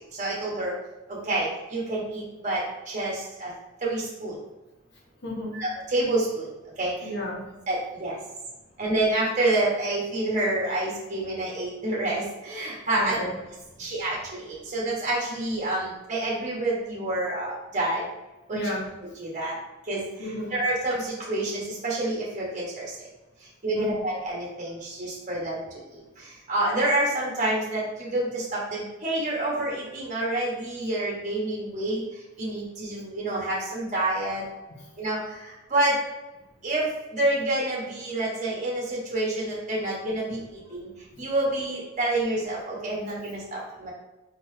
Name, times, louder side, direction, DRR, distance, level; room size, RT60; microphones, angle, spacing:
voice 1, 0.2-0.7 1.3-2.6 2.9-3.1 3.4-3.5 3.8-4.3 5.5-6.4 6.8-6.9 7.7-8.1 8.8-13.1 13.8-14.2 14.7-18.0 18.5-18.6 19.2-19.5 19.9-20.0 20.5-21.0 21.3-21.5 21.8-22.8 23.6-25.6 26.5-32.0 32.4-34.4 35.0-35.2 35.7-35.9 36.6-36.9 37.1-40.4 40.7-40.8 41.2-43.9, right 2 dB, 35° right, -4 dB, 1.2 m, -27 dB
voice 2, 5.2-5.6 7.0-7.5 12.9-13.3 13.8-13.9 18.5-18.9 20.2-20.6 23.7-24.0 34.8-34.9 41.1-41.2, equal, 50° left, -3 dB, 1.2 m, -33 dB
4.2 x 3.8 x 2.7 m, 1.0 s
head